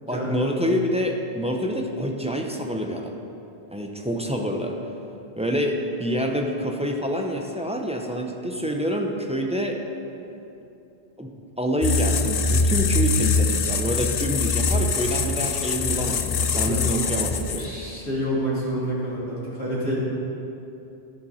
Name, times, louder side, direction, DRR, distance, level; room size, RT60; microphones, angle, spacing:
voice 1, 0.0-3.2 3.7-4.8 5.4-9.8 11.2-11.3 11.6-17.8, equal, 10° right, 2 dB, 0.5 m, -27 dB
sound 1, 11.8-17.8, left 4 dB, 55° left, 0.4 m, -23 dB
voice 2, 16.5-16.9 17.6-19.9, equal, 90° left, -9 dB, 2.6 m, -28 dB
11.5 x 7.4 x 4.3 m, 2.8 s
omnidirectional pair, 1.1 m